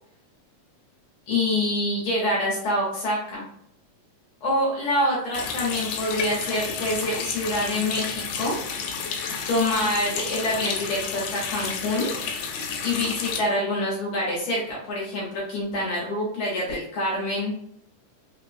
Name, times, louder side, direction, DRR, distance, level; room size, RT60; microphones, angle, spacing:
voice 1, 1.3-3.4 4.4-8.6 9.5-12.1 12.8-17.5, left 1 dB, 65° left, -4 dB, 1.8 m, -26 dB
Water tap faucet, 5.3-13.4, left 6 dB, 85° left, 2.1 m, -31 dB
5.4 x 2.2 x 2.5 m, 0.71 s
omnidirectional pair, 3.7 m